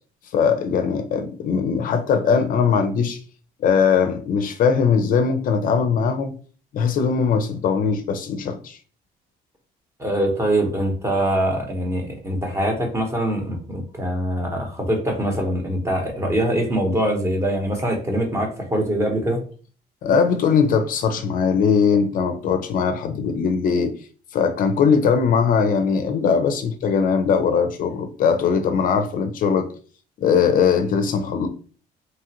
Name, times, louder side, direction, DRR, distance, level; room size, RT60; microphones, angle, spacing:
voice 1, 0.3-3.2 3.6-6.3 6.7-8.8 20.0-23.9 24.3-29.7 30.2-31.5, left 6 dB, 55° left, 8 dB, 0.4 m, -20 dB
voice 2, 10.0-19.4, right 1 dB, 15° right, 2 dB, 0.9 m, -23 dB
2.9 x 2.4 x 2.9 m, 0.41 s
cardioid pair, 110°, 17 cm